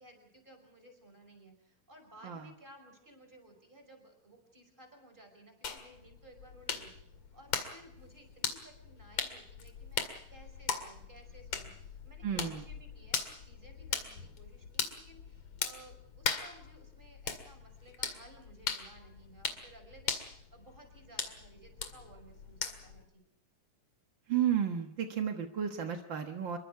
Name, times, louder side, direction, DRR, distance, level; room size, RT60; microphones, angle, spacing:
voice 1, 0.0-23.2, right 1 dB, 15° right, 5 dB, 5.6 m, -57 dB
sound 1, 5.6-23.0, left 6 dB, 50° left, 3.0 m, -40 dB
voice 2, 12.2-12.6 24.3-26.6, right 9 dB, 65° right, 4 dB, 1.2 m, -32 dB
27.0 x 23.5 x 4.8 m, 0.71 s
omnidirectional pair, 4.1 m